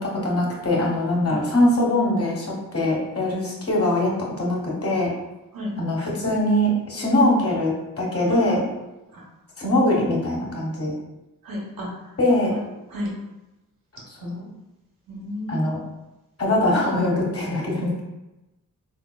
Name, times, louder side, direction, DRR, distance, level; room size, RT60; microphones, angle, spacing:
voice 1, 0.0-5.1 5.8-8.6 9.6-10.9 12.2-12.5 14.2-14.5 15.5-15.8 16.4-18.0, left 1 dB, 40° left, -3 dB, 1.2 m, -22 dB
voice 2, 8.3-8.6 9.1-9.2 11.4-11.9 12.5-12.6 12.9-13.1 15.1-15.6, right 1 dB, 70° right, -3 dB, 1.2 m, -31 dB
3.7 x 2.7 x 2.3 m, 1.0 s
cardioid pair, 45°, 36 cm